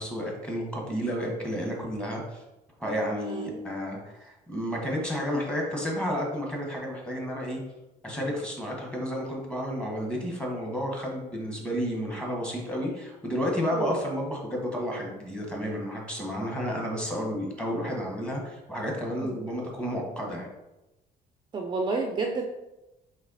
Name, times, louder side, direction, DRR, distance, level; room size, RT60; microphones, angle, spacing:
voice 1, 0.0-2.4 2.8-7.6 8.0-20.5, equal, 5° left, -1 dB, 1.3 m, -31 dB
voice 2, 3.2-3.6 13.7-14.0 19.2-19.4 21.5-22.4, right 3 dB, 25° right, 2 dB, 0.5 m, -30 dB
4.1 x 3.2 x 4.0 m, 0.97 s
cardioid pair, 110°, 17 cm